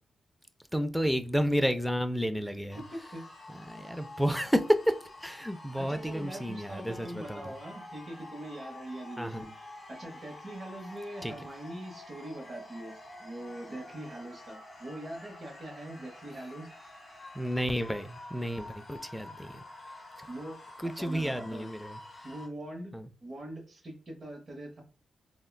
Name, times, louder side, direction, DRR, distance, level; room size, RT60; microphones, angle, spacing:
voice 1, 0.7-2.8 3.5-7.5 9.2-9.4 11.2-11.3 17.3-19.6 20.2-20.3 20.8-22.0 22.9-23.1, equal, ahead, 8 dB, 0.3 m, -31 dB
voice 2, 2.4-3.3 5.8-9.5 9.9-16.7 20.3-20.6 20.9-21.7 22.2-22.9 23.2-24.8, right 1 dB, 40° right, 2 dB, 0.9 m, -42 dB
sound 1, 2.7-22.5, left 2 dB, 30° left, 1.1 m, -49 dB
3.5 x 2.1 x 2.2 m, 0.36 s
cardioid pair, 85°, 0 cm